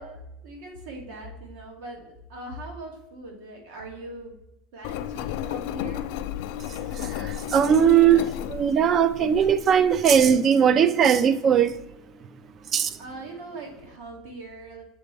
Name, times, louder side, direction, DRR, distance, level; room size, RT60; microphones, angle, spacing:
voice 1, 0.0-4.3 4.7-6.1 13.0-14.8, right 2 dB, 75° right, 1.8 m, -40 dB
Engine, 4.8-10.3, left 11 dB, 65° left, 0.3 m, -33 dB
voice 2, 7.1-11.7 12.7-12.9, right 8 dB, 30° right, 0.3 m, -19 dB
7.0 x 4.2 x 3.2 m
cardioid pair, 160°, 0 cm